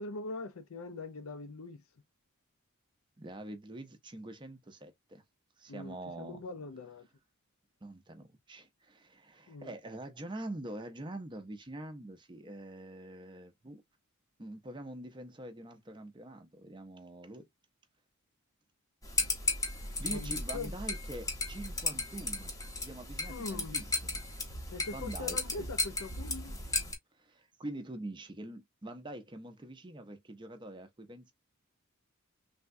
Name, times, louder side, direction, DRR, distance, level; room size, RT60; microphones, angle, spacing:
voice 1, 0.0-1.8 5.7-7.1 9.5-9.7 20.1-20.7 23.3-23.9 24.7-26.6, left 3 dB, 70° left, 0.5 m, -42 dB
voice 2, 3.2-5.2 5.6-6.4 7.8-13.8 14.4-17.4 20.0-24.2 24.9-25.4 27.1-31.3, right 1 dB, 20° right, 0.5 m, -45 dB
sound 1, 19.0-26.9, left 2 dB, 15° left, 0.7 m, -35 dB
3.4 x 2.1 x 2.6 m
head